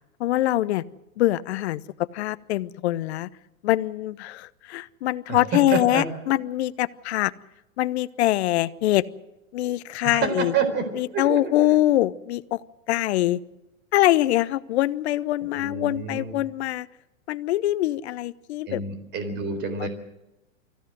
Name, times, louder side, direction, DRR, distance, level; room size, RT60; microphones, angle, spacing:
voice 1, 0.2-0.8 1.2-1.8 2.1-3.3 3.6-7.3 7.8-9.0 9.5-10.5 10.9-12.6 12.9-13.4 13.9-16.9 17.3-18.8 19.8-19.9, left 15 dB, 50° left, 17 dB, 0.9 m, -23 dB
voice 2, 5.7-6.0 10.0-10.3 10.5-10.8 11.1-11.4 15.4-16.4 18.7-19.9, right 5 dB, 25° right, 9 dB, 4.2 m, -28 dB
24.5 x 16.0 x 7.9 m, 0.94 s
hypercardioid pair, 135°, 41 cm